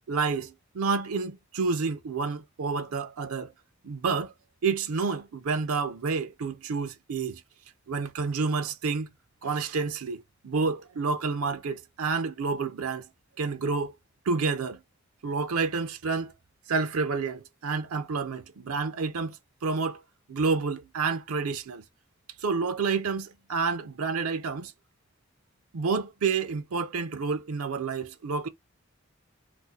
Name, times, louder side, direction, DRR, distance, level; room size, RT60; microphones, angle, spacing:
voice 1, 0.1-3.5 3.8-4.3 4.6-7.4 7.9-9.1 9.4-13.1 13.4-13.9 14.3-14.8 15.2-16.3 16.7-19.4 19.6-20.0 20.3-21.8 22.4-24.7 25.7-28.5, right 4 dB, 85° right, 0.5 m, -29 dB
2.5 x 2.4 x 4.1 m
head